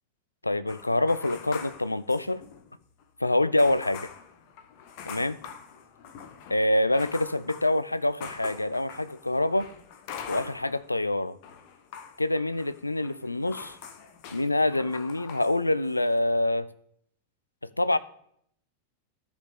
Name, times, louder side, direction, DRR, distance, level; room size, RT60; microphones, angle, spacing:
voice 1, 0.4-2.4 3.2-4.1 5.1-5.4 6.5-9.7 10.3-11.4 12.2-13.8 14.3-16.7 17.6-18.0, left 1 dB, 85° left, 0.4 m, -26 dB
sound 1, 0.7-2.7 3.0-3.1 3.6-11.0 11.2-15.6 15.8-16.2, left 7 dB, 45° left, 1.0 m, -44 dB
14.5 x 5.2 x 3.6 m
figure-of-eight pair, 90°, 0 cm